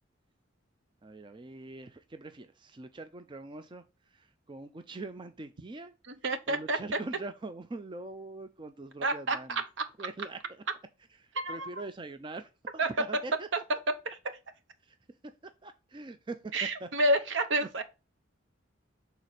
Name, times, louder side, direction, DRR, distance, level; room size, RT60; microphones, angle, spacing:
voice 1, 1.0-3.8 4.1-5.9 6.5-9.5 10.0-10.4 11.5-13.5 14.9-15.0 15.6-16.4 16.8-16.9, right 2 dB, 25° right, 0.4 m, -42 dB
voice 2, 6.1-6.8 9.0-9.9 11.3-11.8 12.8-12.9 14.0-14.2 16.5-17.8, right 1 dB, 65° right, 0.9 m, -29 dB
6.5 x 4.0 x 4.2 m
head